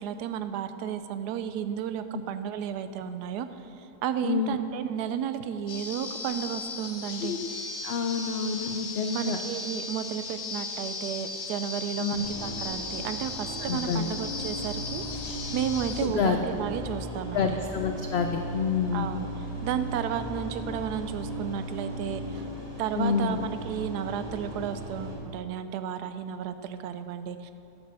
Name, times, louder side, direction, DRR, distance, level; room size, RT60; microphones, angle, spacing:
voice 1, 0.0-3.5 3.8-7.3 9.1-17.6 18.9-19.3 19.6-22.5 22.8-27.5, right 9 dB, 80° right, 10 dB, 1.1 m, -33 dB
voice 2, 4.2-4.6 7.2-7.5 7.8-9.4 12.0-12.2 13.7-14.1 16.0-16.4 17.3-19.2 23.0-23.4, left 6 dB, 85° left, 5 dB, 0.5 m, -28 dB
sound 1, 5.7-16.1, left 3 dB, 50° left, 1.0 m, -37 dB
sound 2, 12.1-25.1, right 1 dB, 20° right, 2.4 m, -37 dB
11.0 x 6.1 x 6.7 m, 2.8 s
omnidirectional pair, 1.7 m